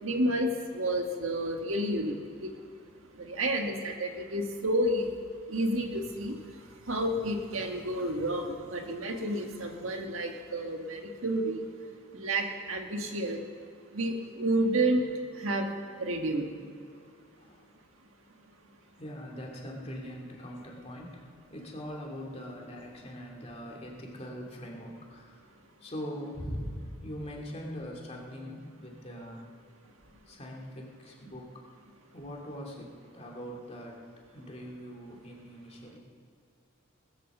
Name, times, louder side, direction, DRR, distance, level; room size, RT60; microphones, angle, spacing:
voice 1, 0.0-2.1 2.4-2.5 3.2-5.1 5.5-6.3 6.9-11.6 12.1-13.4 13.9-15.0 15.4-15.7 16.0-16.5, right 1 dB, 80° right, 3 dB, 1.7 m, -30 dB
voice 2, 16.9-17.7 19.0-21.2 21.5-25.4 25.8-29.5 30.3-31.6 32.1-36.0, equal, 30° left, -1 dB, 2.6 m, -42 dB
20.5 x 8.2 x 7.2 m, 2.4 s
head